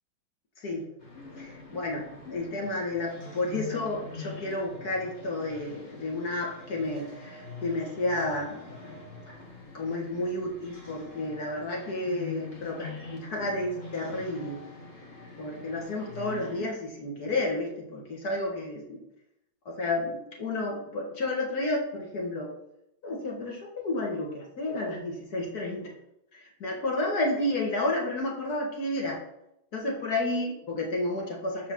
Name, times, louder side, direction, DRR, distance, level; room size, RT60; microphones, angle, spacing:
voice 1, 0.6-0.9 1.3-8.8 9.3-9.4 9.7-14.6 15.4-19.0 19.7-22.5 23.0-25.9 26.3-29.2 29.7-31.7, left 2 dB, 55° left, -1 dB, 2.2 m, -31 dB
sound 1, 1.0-16.7, left 4 dB, 35° left, 1.7 m, -44 dB
6.5 x 5.0 x 6.0 m, 0.80 s
omnidirectional pair, 2.1 m